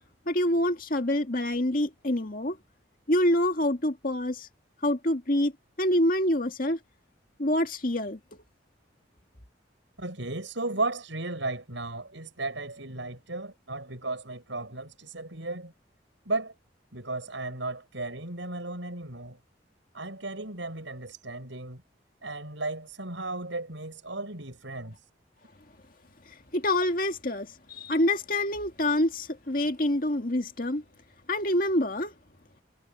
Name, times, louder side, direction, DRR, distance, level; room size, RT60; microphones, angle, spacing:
voice 1, 0.3-2.6 3.1-4.5 4.8-5.5 5.8-6.8 7.4-8.2 26.5-30.8 31.3-32.1, left 1 dB, 50° left, 2.2 m, -26 dB
voice 2, 10.0-15.7 16.3-16.5 16.9-19.4 19.9-21.8 22.2-25.0, right 2 dB, 85° right, 7.0 m, -35 dB
head